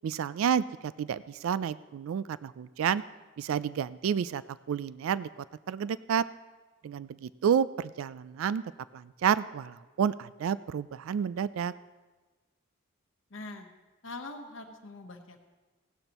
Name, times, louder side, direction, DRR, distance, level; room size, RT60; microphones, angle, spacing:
voice 1, 0.0-3.0 3.4-4.4 4.7-5.3 5.7-6.2 6.8-8.6 8.9-11.7, right 8 dB, 80° right, 17 dB, 0.3 m, -30 dB
voice 2, 13.3-13.7 14.0-15.4, left 2 dB, 65° left, 3 dB, 1.0 m, -43 dB
16.5 x 12.0 x 3.0 m, 1.3 s
head